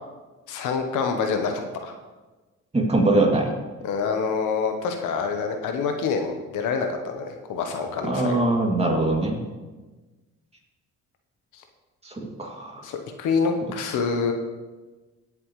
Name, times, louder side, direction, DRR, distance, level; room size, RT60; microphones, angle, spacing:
voice 1, 0.5-1.9 3.8-8.4 11.5-11.6 12.8-14.3, left 5 dB, 85° left, 5 dB, 1.1 m, -26 dB
voice 2, 2.7-3.5 8.0-9.4 12.0-12.9, right 2 dB, 20° right, -1 dB, 2.5 m, -22 dB
16.5 x 7.3 x 3.2 m, 1.2 s
cardioid pair, 90°, 30 cm